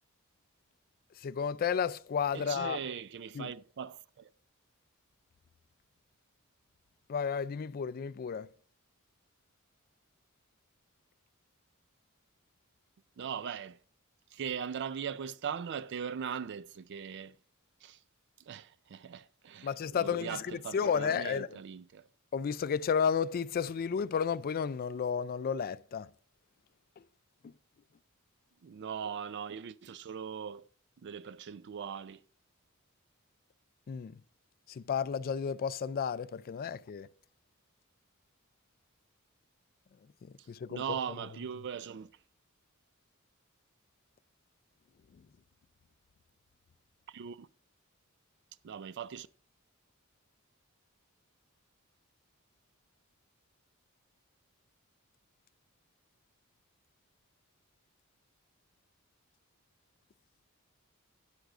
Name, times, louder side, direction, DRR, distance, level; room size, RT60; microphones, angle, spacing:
voice 1, 1.2-2.8 3.3-3.5 7.1-8.5 19.6-21.6 22.3-26.1 27.4-27.5 33.9-34.2 34.7-37.1 40.2-41.0, left 6 dB, 45° left, 0.3 m, -32 dB
voice 2, 2.3-4.3 13.2-13.8 14.3-17.3 17.8-18.0 18.5-22.0 28.6-30.6 31.0-32.2 40.7-42.1 47.1-47.5 48.6-49.3, right 7 dB, 55° right, 0.4 m, -40 dB
13.0 x 9.1 x 2.5 m
head